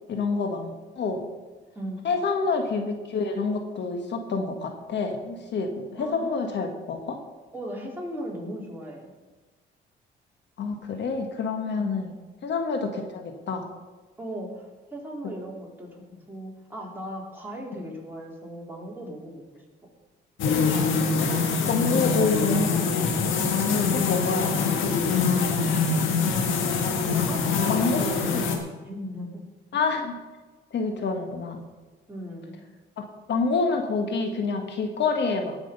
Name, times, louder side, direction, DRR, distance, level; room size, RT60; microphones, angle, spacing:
voice 1, 0.1-1.3 2.0-7.2 10.6-12.2 12.4-13.7 21.2-21.3 21.7-23.2 23.5-24.5 25.5-25.6 27.7-28.1 28.3-28.4 29.7-30.2 30.7-31.6 33.0-35.6, left 4 dB, 65° left, 5 dB, 1.5 m, -27 dB
voice 2, 1.7-2.1 6.0-6.5 7.5-9.1 11.7-11.9 14.2-19.6 25.4-25.8 27.1-29.4 32.1-32.6, equal, 10° right, -3 dB, 4.0 m, -38 dB
sound 1, 20.4-28.6, left 4 dB, 85° left, 1.7 m, -24 dB
18.5 x 6.1 x 5.4 m, 1.3 s
cardioid pair, 90°, 20 cm